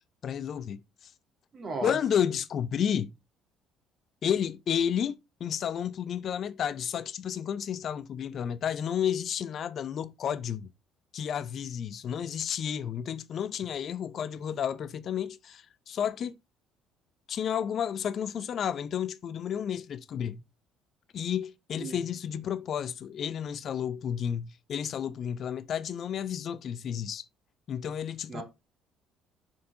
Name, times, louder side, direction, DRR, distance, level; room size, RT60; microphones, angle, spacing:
voice 1, 0.2-1.1 1.8-3.1 4.2-10.7 11.1-16.3 17.3-20.4 21.1-27.2 27.7-28.4, left 8 dB, 55° left, 0.5 m, -31 dB
voice 2, 1.5-1.9 21.8-22.0 28.3-28.4, right 3 dB, 45° right, 2.4 m, -36 dB
5.7 x 4.7 x 3.8 m
hypercardioid pair, 55°, 0 cm